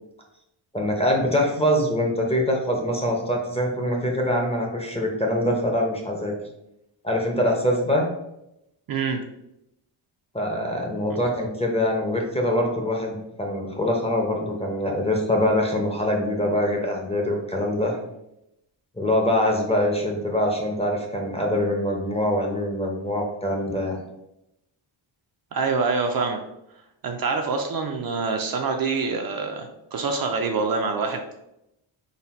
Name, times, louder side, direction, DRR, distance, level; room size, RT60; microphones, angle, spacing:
voice 1, 0.7-6.3 7.0-8.1 10.3-18.0 19.0-24.0, left 1 dB, 15° left, 0 dB, 0.6 m, -24 dB
voice 2, 8.9-9.2 25.5-26.4 27.0-31.4, right 4 dB, 50° right, 4 dB, 0.5 m, -25 dB
4.0 x 2.1 x 4.1 m, 0.84 s
wide cardioid pair, 135°, 48 cm